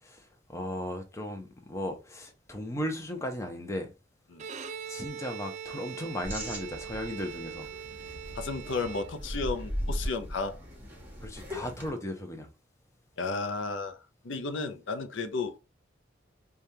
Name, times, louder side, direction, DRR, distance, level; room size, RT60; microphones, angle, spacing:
voice 1, 0.0-3.9 4.9-7.7 11.2-12.5, left 1 dB, 15° left, 0.7 m, -36 dB
Bowed string instrument, 4.3-9.6, right 8 dB, 35° right, 0.3 m, -42 dB
sound 1, 6.2-11.9, equal, 10° right, 1.1 m, -38 dB
voice 2, 8.4-10.6 13.2-15.6, left 3 dB, 70° left, 0.5 m, -33 dB
5.0 x 2.3 x 2.7 m
head